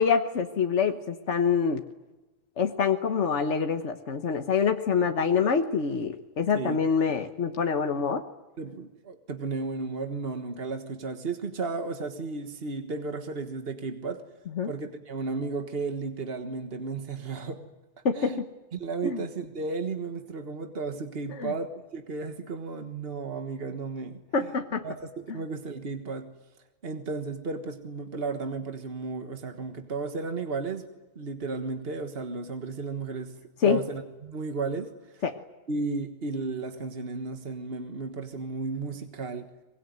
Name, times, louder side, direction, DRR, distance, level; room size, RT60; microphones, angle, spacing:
voice 1, 0.0-1.8 2.6-8.2 14.6-14.7 18.0-18.3 19.0-19.2 21.4-21.5 24.3-24.8 33.6-33.8 35.2-35.3, left 6 dB, 85° left, 6 dB, 1.5 m, -25 dB
voice 2, 6.5-6.9 8.6-14.2 14.6-17.6 18.1-18.4 18.7-24.5 24.8-26.3 26.8-30.9 31.2-33.3 33.6-35.2 35.7-39.5, right 4 dB, 60° right, 7 dB, 1.7 m, -34 dB
24.0 x 22.0 x 9.5 m, 1.1 s
omnidirectional pair, 1.2 m